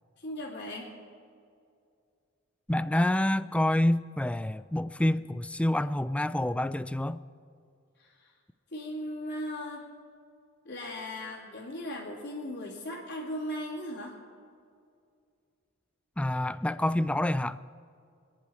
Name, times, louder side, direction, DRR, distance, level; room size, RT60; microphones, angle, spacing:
voice 1, 0.2-0.9 8.0-8.3 8.7-9.9 10.6-14.2, left 1 dB, 55° left, -7 dB, 2.7 m, -37 dB
voice 2, 2.7-7.2 16.2-17.6, left 1 dB, 5° left, 15 dB, 0.3 m, -27 dB
27.5 x 10.5 x 4.3 m, 2.4 s
head